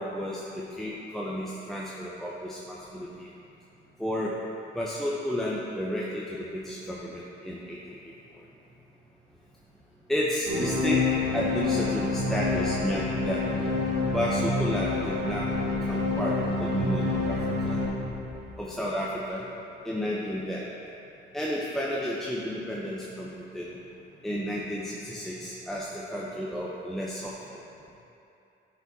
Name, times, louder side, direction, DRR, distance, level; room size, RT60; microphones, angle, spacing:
voice 1, 0.0-3.3 4.0-4.3 4.7-8.1 10.1-11.0 11.3-13.4 14.1-15.5 15.9-17.4 17.6-17.8 18.6-19.4 19.8-20.7 21.3-23.8 24.2-27.6, equal, ahead, -5 dB, 0.7 m, -32 dB
sound 1, 10.5-18.9, left 3 dB, 60° right, 1.2 m, -28 dB
9.2 x 5.2 x 2.7 m, 2.8 s
cardioid pair, 90°, 20 cm